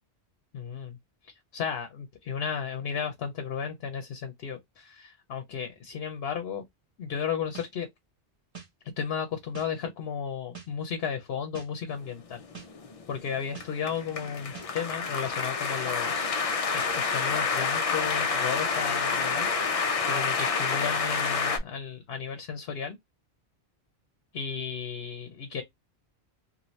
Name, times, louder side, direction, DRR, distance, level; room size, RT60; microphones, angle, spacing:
voice 1, 0.5-1.0 1.2-6.6 7.0-7.9 9.0-12.4 13.1-19.5 20.1-23.0 24.3-25.6, left 7 dB, 65° left, 0.9 m, -34 dB
sound 1, 7.6-7.7 8.5-8.7 9.5-9.7 10.6-10.7 11.5-11.7 12.5-12.7 13.6-13.7 14.5-14.7, right 6 dB, 30° right, 1.0 m, -43 dB
sound 2, 12.3-21.6, left 5 dB, 50° left, 0.4 m, -28 dB
2.7 x 2.6 x 3.0 m
omnidirectional pair, 1.1 m